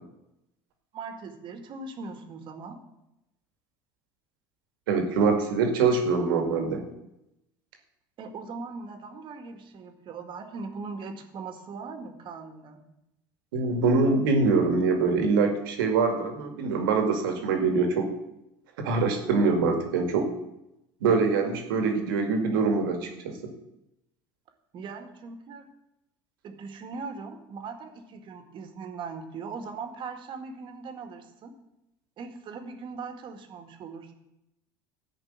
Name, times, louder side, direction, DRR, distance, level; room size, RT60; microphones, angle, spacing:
voice 1, 0.9-2.8 8.2-12.8 24.7-25.7 26.4-31.5 32.2-34.1, right 4 dB, 50° right, 6 dB, 2.0 m, -40 dB
voice 2, 4.9-6.8 13.5-18.1 18.8-20.3 21.0-23.4, right 4 dB, 85° right, 4 dB, 2.1 m, -24 dB
13.0 x 5.3 x 8.9 m, 0.89 s
supercardioid pair, 95°, 11 cm